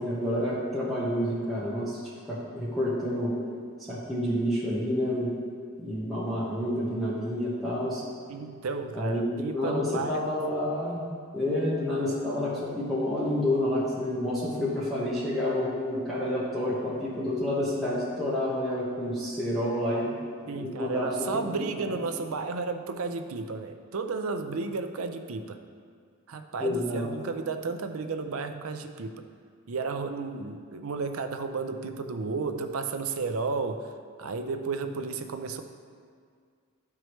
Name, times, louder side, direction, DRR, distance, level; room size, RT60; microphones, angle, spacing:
voice 1, 0.0-2.0 2.3-3.3 3.9-5.3 5.8-8.0 8.9-11.1 11.3-20.1 20.5-22.0 26.6-27.1, left 1 dB, ahead, -10 dB, 1.1 m, -29 dB
voice 2, 8.3-10.4 20.5-25.6 26.3-29.3 29.7-33.9 34.2-35.6, right 4 dB, 75° right, 7 dB, 0.5 m, -33 dB
12.0 x 4.7 x 3.1 m, 2.1 s
head